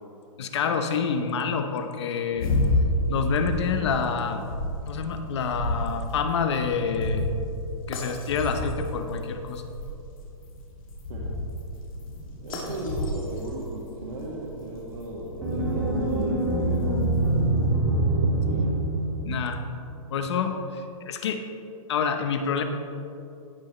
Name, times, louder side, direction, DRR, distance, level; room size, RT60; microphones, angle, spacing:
voice 1, 0.4-2.5 3.1-4.4 4.9-7.3 7.9-9.6 19.2-19.6 20.1-21.4 21.9-22.6, left 6 dB, 50° left, 7 dB, 0.8 m, -27 dB
sound 1, 2.3-17.5, left 1 dB, 70° left, 2.4 m, -31 dB
voice 2, 12.4-17.3 18.4-18.8, right 2 dB, 90° right, -6 dB, 1.9 m, -36 dB
sound 2, 15.4-19.7, right 2 dB, 5° right, 2.1 m, -24 dB
17.0 x 6.3 x 3.2 m, 2.7 s
hypercardioid pair, 165°, 18 cm